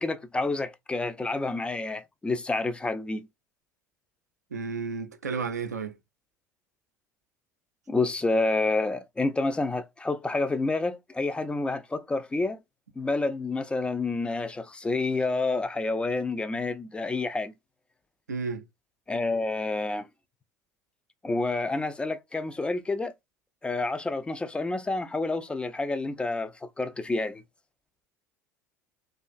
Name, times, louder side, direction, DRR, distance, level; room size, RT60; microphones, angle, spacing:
voice 1, 0.0-3.3 7.9-12.6 13.0-17.5 19.1-20.1 21.2-23.1 23.6-27.4, left 3 dB, 10° left, 0.3 m, -29 dB
voice 2, 4.5-6.0 18.3-18.7, right 5 dB, 80° right, 0.4 m, -32 dB
2.4 x 2.3 x 2.3 m
figure-of-eight pair, 70°, 9 cm